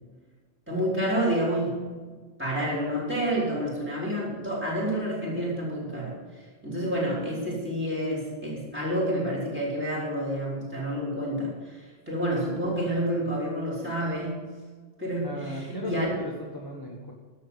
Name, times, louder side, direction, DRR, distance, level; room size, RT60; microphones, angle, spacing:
voice 1, 0.7-6.2 6.6-14.5 15.0-16.0, equal, 10° right, -4 dB, 4.5 m, -29 dB
voice 2, 15.2-17.1, equal, 20° left, -2 dB, 1.5 m, -36 dB
12.0 x 7.2 x 8.1 m, 1.4 s
omnidirectional pair, 1.1 m